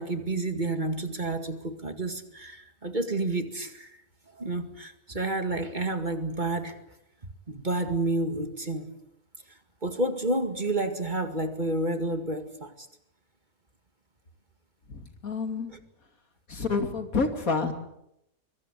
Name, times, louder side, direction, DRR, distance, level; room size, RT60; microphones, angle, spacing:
voice 1, 0.0-3.9 4.3-6.8 7.5-8.9 9.8-12.9 15.7-15.8, right 2 dB, 30° right, 2.2 m, -30 dB
voice 2, 14.9-15.7 16.5-17.7, left 4 dB, 70° left, 3.1 m, -28 dB
25.0 x 23.0 x 8.4 m
omnidirectional pair, 1.5 m